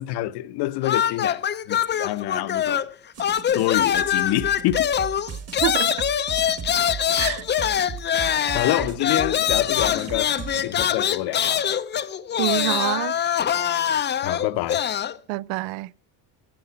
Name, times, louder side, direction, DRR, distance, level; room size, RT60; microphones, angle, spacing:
voice 1, 0.0-2.8 3.5-4.9 8.5-10.2 10.5-11.6 14.2-14.9, left 15 dB, 65° left, 0.9 m, -26 dB
sound 1, 0.8-2.9 3.2-15.2, left 9 dB, 25° left, 0.5 m, -24 dB
sound 2, 3.1-10.8, right 6 dB, 35° right, 1.6 m, -37 dB
voice 2, 5.6-6.0 7.2-7.4 12.4-13.2 15.3-15.9, right 18 dB, 80° right, 0.6 m, -26 dB
16.5 x 7.0 x 5.7 m
cardioid pair, 135°, 43 cm